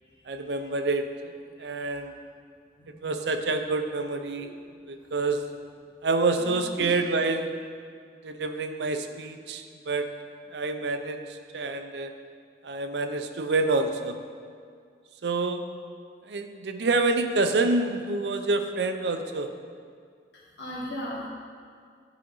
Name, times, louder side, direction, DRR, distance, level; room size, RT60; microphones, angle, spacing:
voice 1, 0.3-1.1 1.6-2.1 3.0-4.5 4.9-5.4 6.0-7.5 8.2-10.1 10.5-11.2 11.5-12.1 12.6-14.2 15.2-15.6 16.3-19.5, right 3 dB, 75° right, 7 dB, 0.5 m, -27 dB
voice 2, 6.4-6.9 20.6-21.3, equal, 85° left, -6 dB, 1.8 m, -37 dB
11.0 x 4.9 x 4.0 m, 2.1 s
head